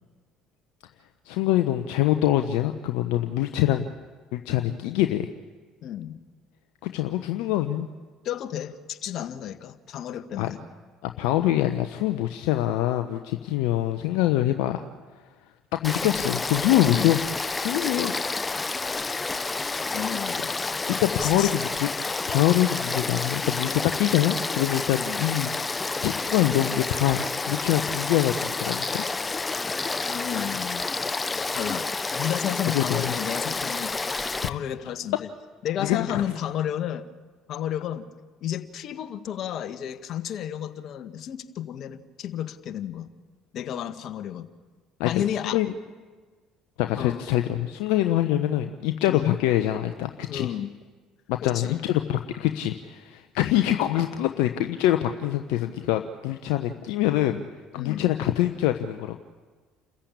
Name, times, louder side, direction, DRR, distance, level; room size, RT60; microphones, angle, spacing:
voice 1, 1.3-3.9 4.3-5.3 6.8-7.9 10.4-10.5 11.0-14.8 15.7-17.2 17.6-18.1 20.9-25.7 26.0-29.0 32.7-33.1 34.5-34.6 35.8-36.2 45.0-45.2 45.5-45.7 46.8-50.5 51.3-57.4 57.7-59.2, left 13 dB, 70° left, 7 dB, 0.9 m, -25 dB
voice 2, 5.8-6.2 8.2-10.6 16.8-17.2 19.9-20.4 21.1-21.5 25.0-25.2 30.1-30.9 31.5-31.8 32.1-33.9 34.4-35.3 35.6-37.0 37.5-38.1 38.4-43.1 43.5-44.5 45.0-45.6 47.0-47.2 49.1-49.4 50.3-50.7 51.4-51.8 57.8-58.1, left 10 dB, 55° left, 10 dB, 1.4 m, -32 dB
Frog / Stream, 15.8-34.5, left 3 dB, 25° left, 0.8 m, -29 dB
29.0 x 14.5 x 8.6 m, 1.4 s
hypercardioid pair, 60°, 0 cm